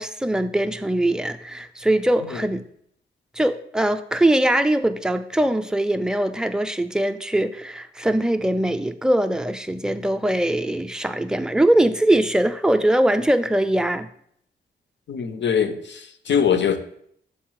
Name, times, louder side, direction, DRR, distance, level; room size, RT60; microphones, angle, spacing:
voice 1, 0.0-2.6 3.3-14.1, right 1 dB, 5° right, 8 dB, 0.3 m, -21 dB
voice 2, 15.1-16.8, left 7 dB, 75° left, 10 dB, 0.7 m, -22 dB
6.6 x 4.0 x 4.7 m, 0.68 s
wide cardioid pair, 130°, 19 cm